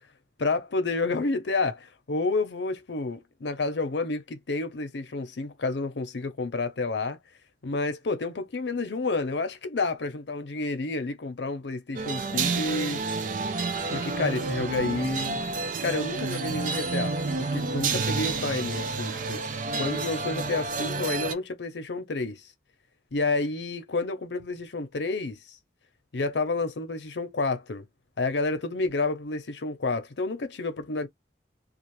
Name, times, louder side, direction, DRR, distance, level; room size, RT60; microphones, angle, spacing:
voice 1, 0.4-7.2 7.6-13.0 13.9-15.4 15.8-22.5 23.1-25.6 26.1-27.8 28.2-31.1, left 3 dB, 90° left, 0.7 m, -30 dB
sound 1, 11.9-21.3, right 4 dB, 45° right, 0.4 m, -29 dB
2.4 x 2.4 x 3.0 m
head